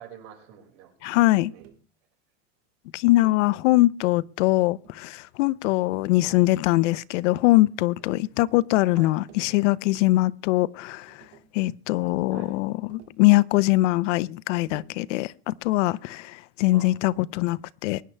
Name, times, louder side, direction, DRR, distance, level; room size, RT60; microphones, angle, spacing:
voice 1, 0.0-1.7 3.2-3.7 6.3-6.5 8.9-9.2 12.3-12.6 16.7-16.9, right 9 dB, 65° right, 5.5 m, -48 dB
voice 2, 1.0-1.5 2.9-11.2 11.5-18.0, left 18 dB, 85° left, 0.7 m, -22 dB
Tap, 1.6-1.9 3.2-3.5 4.6-5.2 6.2-7.0 8.0-8.3 9.0-9.6 10.7-10.8 11.1-11.6 12.9-13.3 14.7-15.1 16.7-17.1, right 7 dB, 40° right, 1.6 m, -53 dB
23.5 x 10.0 x 3.3 m
cardioid pair, 180°, 35 cm